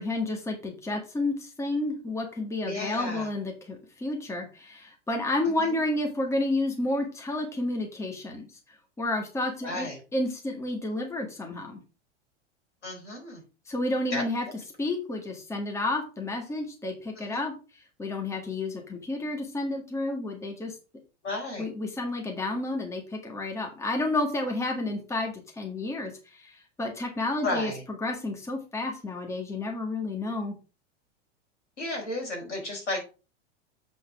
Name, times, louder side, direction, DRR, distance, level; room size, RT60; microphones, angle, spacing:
voice 1, 0.0-11.8 13.7-14.5 14.8-20.8 21.6-27.7 28.0-30.5, left 2 dB, 10° left, 1 dB, 1.9 m, -31 dB
voice 2, 2.6-3.3 5.4-5.8 9.6-10.0 12.8-13.4 14.1-14.2 17.2-17.4 21.2-21.7 27.4-27.8 31.8-33.1, left 2 dB, 75° left, -1 dB, 5.1 m, -33 dB
7.9 x 4.6 x 4.8 m, 0.32 s
figure-of-eight pair, 90°, 35 cm